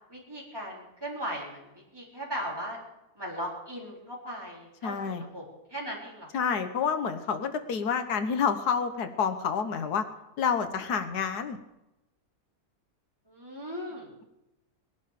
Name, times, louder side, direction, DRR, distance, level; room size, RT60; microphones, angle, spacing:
voice 1, 0.1-2.8 3.1-5.4 5.7-6.5 13.3-14.1, equal, 15° right, -4 dB, 4.1 m, -38 dB
voice 2, 4.8-5.2 6.3-10.1 10.4-11.6, left 6 dB, 85° left, 9 dB, 1.6 m, -28 dB
20.5 x 11.5 x 5.1 m, 0.94 s
omnidirectional pair, 1.6 m